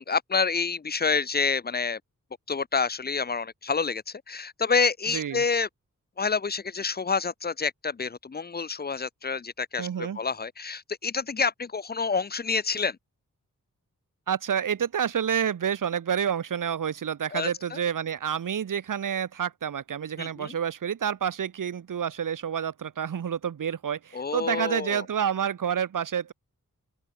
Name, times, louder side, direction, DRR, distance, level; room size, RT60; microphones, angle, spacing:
voice 1, 0.0-2.0 2.5-5.7 6.2-13.0 17.3-17.8 20.2-20.5 24.1-25.0, left 5 dB, 30° left, 0.7 m, -28 dB
voice 2, 5.1-5.4 9.8-10.2 14.3-26.3, right 8 dB, 80° right, 1.3 m, -29 dB
open air
wide cardioid pair, 170°, 32 cm